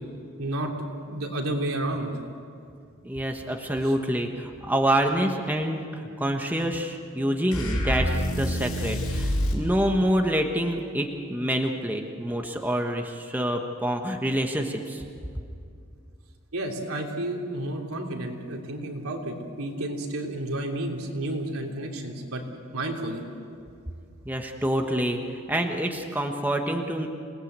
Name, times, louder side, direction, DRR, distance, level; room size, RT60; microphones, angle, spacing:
voice 1, 0.4-0.7 1.0-2.1 16.5-22.4 22.7-23.2, right 1 dB, 80° right, 1 dB, 3.3 m, -31 dB
voice 2, 3.0-15.0 24.2-27.1, right 1 dB, 10° right, 3 dB, 1.3 m, -27 dB
sound 1, 7.5-9.7, equal, 80° left, 6.3 m, -27 dB
28.0 x 19.0 x 8.2 m, 2.4 s
head